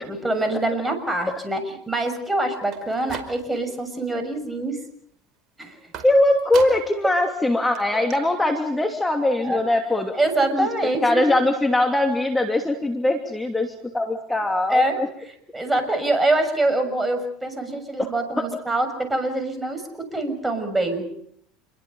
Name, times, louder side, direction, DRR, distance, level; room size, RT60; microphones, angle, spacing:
voice 1, 0.0-4.8 5.6-5.8 9.4-9.6 10.1-11.3 14.7-15.0 15.5-21.1, right 2 dB, 10° right, 6 dB, 6.7 m, -24 dB
sound 1, 2.6-3.8 4.2-4.7 5.9-7.0 7.4-7.5 7.7-7.8 8.1-8.2, right 7 dB, 45° right, 4.9 m, -38 dB
voice 2, 6.0-10.1 10.5-10.7 11.0-15.1 18.0-18.5, left 1 dB, 10° left, 4 dB, 2.9 m, -21 dB
28.5 x 22.5 x 5.6 m, 0.67 s
hypercardioid pair, 90°, 0 cm